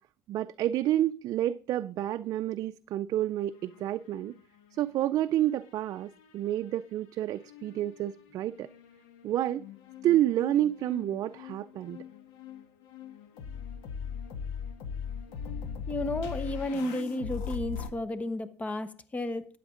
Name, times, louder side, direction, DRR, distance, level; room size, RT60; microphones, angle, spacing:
voice 1, 0.3-4.3 4.7-8.7 9.2-9.6 10.0-12.0, right 13 dB, 55° right, 0.4 m, -29 dB
sound 1, 3.4-5.0 5.3-6.7 7.4-17.9, left 7 dB, 90° left, 1.4 m, -41 dB
voice 2, 15.7-19.5, left 1 dB, 20° left, 1.0 m, -33 dB
13.0 x 9.3 x 3.8 m
cardioid pair, 125°, 7 cm